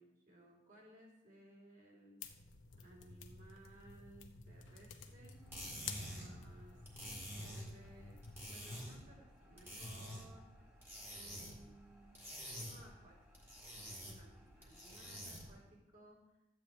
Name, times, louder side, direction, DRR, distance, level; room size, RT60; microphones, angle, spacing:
voice 1, 0.0-2.3 2.8-5.4 6.0-7.0 7.3-10.5 11.1-12.2 12.5-13.2 13.9-16.4, right 1 dB, 45° right, -4 dB, 3.5 m, -61 dB
sound 1, 2.2-8.5, left 5 dB, 90° left, 0.9 m, -52 dB
sound 2, 5.3-15.6, equal, 10° right, 2.0 m, -49 dB
13.5 x 8.9 x 3.2 m, 0.97 s
head